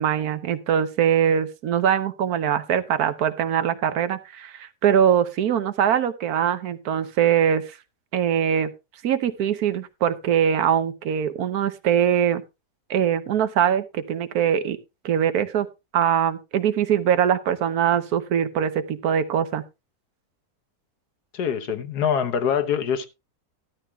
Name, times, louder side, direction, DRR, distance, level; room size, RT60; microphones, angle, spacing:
voice 1, 0.0-7.8 8.1-8.7 9.0-12.4 12.9-14.8 15.0-15.7 15.9-19.6, right 9 dB, 75° right, 1.3 m, -22 dB
voice 2, 21.3-23.1, left 7 dB, 85° left, 1.6 m, -24 dB
13.0 x 12.5 x 2.3 m
omnidirectional pair, 1.7 m